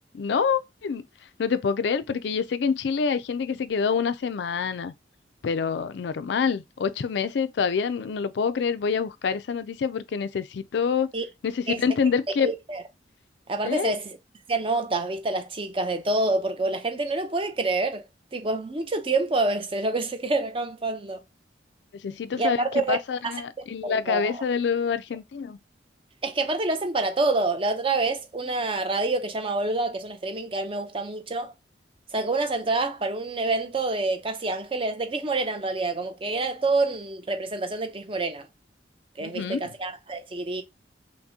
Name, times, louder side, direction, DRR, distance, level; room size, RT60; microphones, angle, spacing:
voice 1, 0.1-1.0 1.4-4.9 5.4-11.1 11.4-12.5 13.6-13.9 22.0-25.6 39.2-39.7, left 6 dB, 70° left, 0.4 m, -26 dB
voice 2, 12.4-12.8 13.5-14.2 14.5-18.0 18.3-21.2 22.4-23.0 23.2-23.3 23.8-24.4 26.2-31.5 32.1-38.5 39.2-40.6, right 2 dB, 30° right, 0.6 m, -27 dB
5.8 x 2.1 x 2.7 m
head